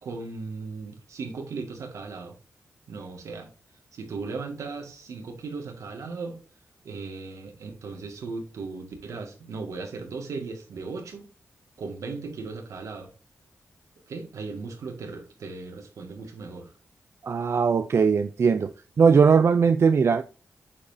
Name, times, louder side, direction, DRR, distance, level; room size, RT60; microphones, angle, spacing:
voice 1, 0.0-2.4 2.9-3.5 3.9-6.4 6.8-11.2 11.8-13.1 14.1-16.7, right 4 dB, 85° right, 2.0 m, -37 dB
voice 2, 17.2-18.7 19.0-20.2, right 5 dB, 60° right, 0.5 m, -19 dB
8.5 x 5.2 x 2.7 m
cardioid pair, 65°, 5 cm